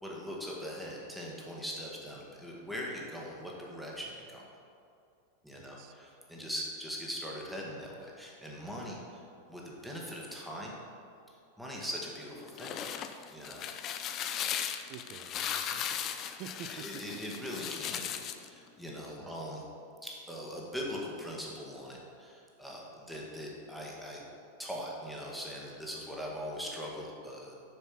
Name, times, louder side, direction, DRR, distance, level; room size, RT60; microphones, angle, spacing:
voice 1, 0.0-4.4 5.4-9.2 9.5-10.8 11.6-12.8 13.3-13.6 16.7-19.6 20.0-24.2 24.6-27.6, equal, ahead, -4 dB, 1.6 m, -41 dB
voice 2, 5.5-5.9 14.9-16.7 19.2-19.4, right 10 dB, 40° right, 8 dB, 0.5 m, -49 dB
sound 1, 12.3-18.5, left 9 dB, 35° left, 0.5 m, -37 dB
6.9 x 6.2 x 5.7 m, 2.5 s
figure-of-eight pair, 90°, 0 cm